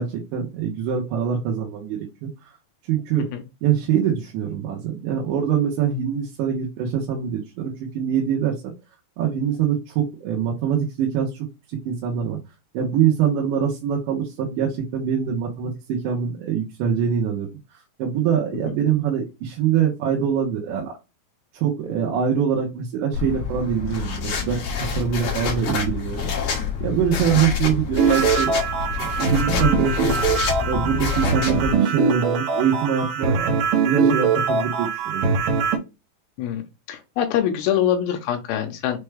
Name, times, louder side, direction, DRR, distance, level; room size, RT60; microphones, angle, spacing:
voice 1, 0.0-2.3 2.9-3.3 3.6-8.7 9.2-11.3 11.7-12.4 12.7-17.5 18.0-20.9 21.5-26.3 26.8-28.6 29.2-30.2 30.6-35.4, right 8 dB, 85° right, -3 dB, 3.2 m, -24 dB
sound 1, 23.1-31.7, left 6 dB, 60° left, 1.8 m, -27 dB
sound 2, 28.0-35.8, right 5 dB, 70° right, 2.1 m, -22 dB
voice 2, 36.9-39.0, left 10 dB, 80° left, 5 dB, 2.3 m, -24 dB
6.8 x 2.3 x 3.3 m, 0.26 s
omnidirectional pair, 5.0 m